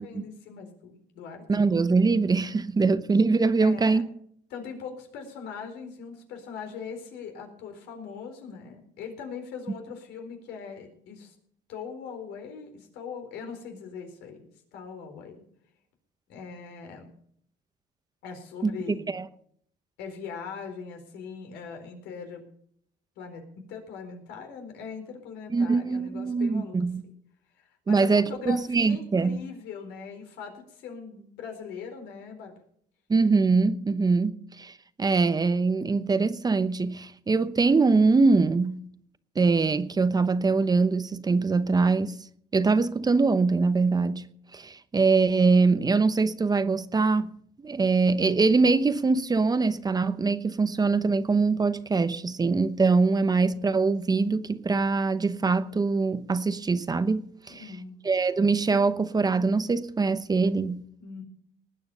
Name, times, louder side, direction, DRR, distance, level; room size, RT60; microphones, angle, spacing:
voice 1, 0.0-1.4 3.6-4.0 4.5-11.3 11.7-14.4 14.7-15.4 16.3-17.1 18.2-19.1 20.0-22.4 23.2-26.8 27.0-27.1 27.5-32.5 57.6-58.0 61.0-61.2, left 6 dB, 85° left, 4.2 m, -40 dB
voice 2, 1.5-4.0 18.6-18.7 19.1-19.2 25.5-27.0 27.9-29.4 33.1-34.7 35.0-38.8 39.4-42.2 42.5-44.2 44.5-47.3 47.6-57.6 58.0-60.8, right 4 dB, 25° right, 0.9 m, -23 dB
19.5 x 8.9 x 5.5 m
cardioid pair, 110°, 17 cm